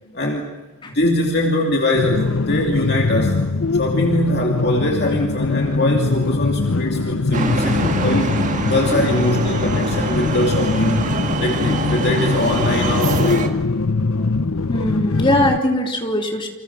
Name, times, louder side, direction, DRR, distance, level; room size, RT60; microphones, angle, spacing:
voice 1, 0.1-0.5 0.8-3.4 3.7-8.3 8.6-13.5, left 1 dB, 45° left, 0 dB, 2.7 m, -22 dB
sound 1, 1.9-15.6, left 3 dB, 70° left, 0.8 m, -22 dB
sound 2, 7.3-13.5, right 2 dB, 35° right, 2.1 m, -24 dB
voice 2, 14.7-16.5, left 1 dB, 20° left, 2 dB, 3.3 m, -20 dB
29.5 x 27.0 x 6.0 m, 1.3 s
head